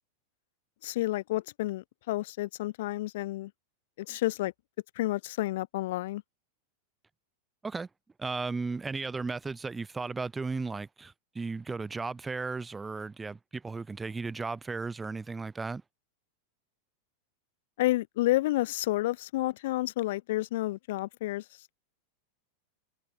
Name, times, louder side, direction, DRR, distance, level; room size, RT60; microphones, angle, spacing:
voice 1, 0.8-3.5 4.0-4.5 4.9-6.2 17.8-21.4, left 17 dB, 55° left, 1.4 m, -30 dB
voice 2, 8.2-15.8, right 4 dB, 10° right, 0.7 m, -35 dB
figure-of-eight pair, 90°, 0 cm